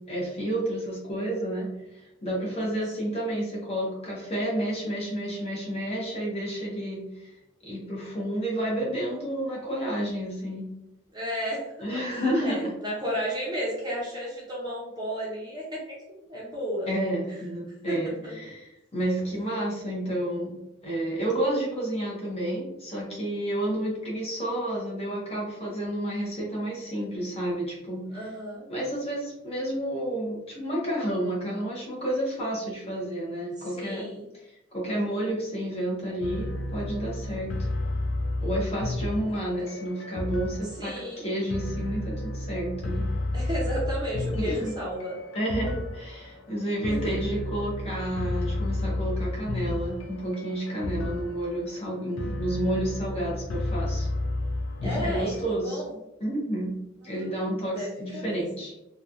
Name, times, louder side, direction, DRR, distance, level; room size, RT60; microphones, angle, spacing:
voice 1, 0.1-7.3 7.6-10.7 11.8-12.7 16.9-20.5 20.8-28.2 28.7-34.1 34.4-37.7 38.4-43.0 44.3-44.7 45.3-54.1 54.8-55.8 56.2-56.7 57.0-58.7, right 1 dB, 30° left, -4 dB, 0.9 m, -30 dB
voice 2, 3.0-3.3 11.1-16.0 16.3-16.9 17.9-18.3 28.1-28.6 33.6-34.2 40.6-41.2 43.3-45.2 46.9-47.1 54.8-55.3 55.6-55.9 57.0-58.5, equal, 20° right, -4 dB, 0.6 m, -33 dB
sound 1, 36.2-55.5, left 1 dB, 85° left, 0.4 m, -32 dB
3.0 x 2.2 x 2.5 m, 0.90 s
head